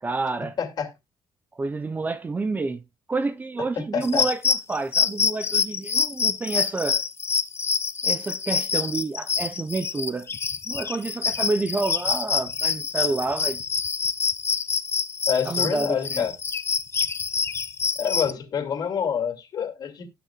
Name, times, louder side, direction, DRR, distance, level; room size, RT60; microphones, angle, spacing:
voice 1, 0.0-0.6 1.6-2.8 3.1-7.0 8.0-10.3 10.7-13.6 15.5-16.3, right 3 dB, 20° right, 0.7 m, -29 dB
voice 2, 0.6-0.9 3.8-4.3 15.3-16.3 18.0-20.1, left 7 dB, 50° left, 2.6 m, -27 dB
sound 1, 4.0-18.3, left 6 dB, 30° left, 0.6 m, -26 dB
19.0 x 6.5 x 2.4 m
cardioid pair, 150°, 9 cm